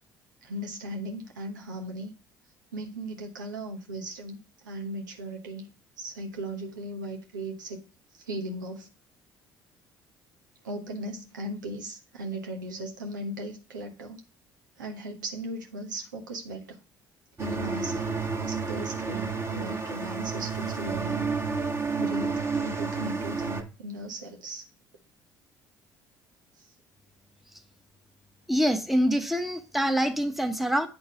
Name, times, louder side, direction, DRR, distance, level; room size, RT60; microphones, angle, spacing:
voice 1, 0.4-2.1 2.7-4.4 4.6-5.7 6.0-7.8 8.1-8.9 10.6-14.2 14.8-16.7 17.4-21.3 22.0-24.6, right 1 dB, 85° right, 1.1 m, -37 dB
sound 1, 17.4-23.6, right 4 dB, 25° right, 1.5 m, -30 dB
voice 2, 28.5-30.9, equal, ahead, 1.1 m, -25 dB
8.8 x 3.9 x 5.0 m
hypercardioid pair, 55°, 10 cm